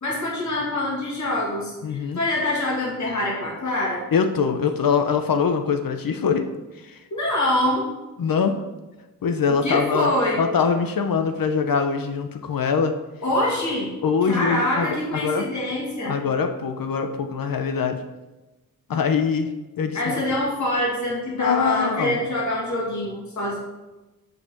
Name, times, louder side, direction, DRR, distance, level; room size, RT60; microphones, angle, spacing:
voice 1, 0.0-4.0 7.1-7.9 9.6-10.4 13.2-13.9 14.2-16.2 19.9-23.6, left 1 dB, 55° left, -4 dB, 2.3 m, -25 dB
voice 2, 1.8-2.2 4.1-6.4 6.8-7.0 8.2-8.6 9.2-12.9 14.0-15.4 16.0-18.0 18.9-19.5 19.8-20.2 21.3-22.2, left 6 dB, 70° left, 6 dB, 0.8 m, -23 dB
6.7 x 5.4 x 7.0 m, 1.1 s
wide cardioid pair, 160°, 35 cm